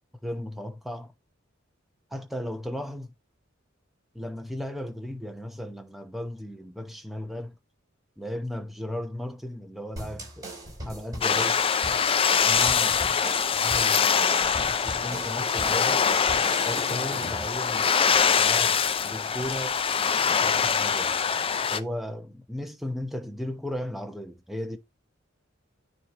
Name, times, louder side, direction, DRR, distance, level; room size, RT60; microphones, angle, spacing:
voice 1, 0.2-1.1 2.1-3.1 4.1-7.5 8.2-10.6 10.8-11.6 12.4-13.0 13.5-16.0 16.6-21.2 21.7-24.8, left 1 dB, ahead, 0.8 m, -36 dB
sound 1, 10.0-17.5, right 1 dB, 20° right, 4.3 m, -39 dB
sound 2, 11.2-21.8, left 6 dB, 30° left, 0.4 m, -24 dB
9.2 x 3.3 x 3.8 m
head